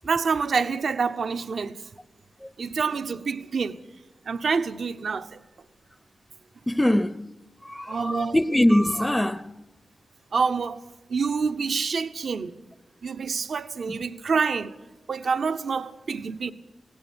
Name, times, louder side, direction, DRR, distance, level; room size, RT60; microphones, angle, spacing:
voice 1, 0.0-1.8 2.6-3.8 4.3-5.4 7.9-8.4 10.3-10.8 11.1-12.5 13.0-14.7 15.1-16.5, right 5 dB, 75° right, 0.9 m, -27 dB
voice 2, 6.7-7.3 7.6-9.5 13.9-14.0, left 1 dB, 15° left, 0.6 m, -23 dB
20.5 x 17.0 x 9.7 m
cardioid pair, 45°, 0 cm